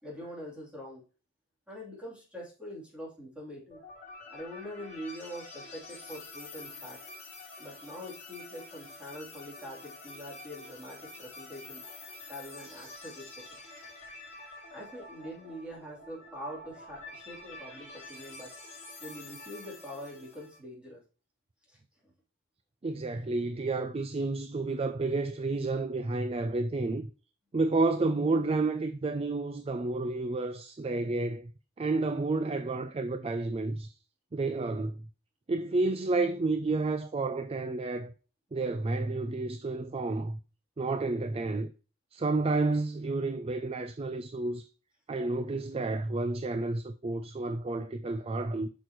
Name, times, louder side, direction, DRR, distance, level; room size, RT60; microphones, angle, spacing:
voice 1, 0.0-1.0 1.7-3.8 4.3-7.0 7.6-11.8 12.3-13.6 14.7-18.5 19.0-21.0 21.7-21.8 22.0-22.1, equal, 5° right, 3.4 m, -44 dB
sound 1, 3.7-20.6, left 2 dB, 35° left, 3.0 m, -48 dB
voice 2, 22.8-27.1 27.5-31.5 31.8-33.9 34.3-35.0 35.5-38.1 38.5-40.4 40.8-41.7 42.1-44.7 45.1-48.7, right 3 dB, 30° right, 0.4 m, -30 dB
8.1 x 6.3 x 3.1 m
head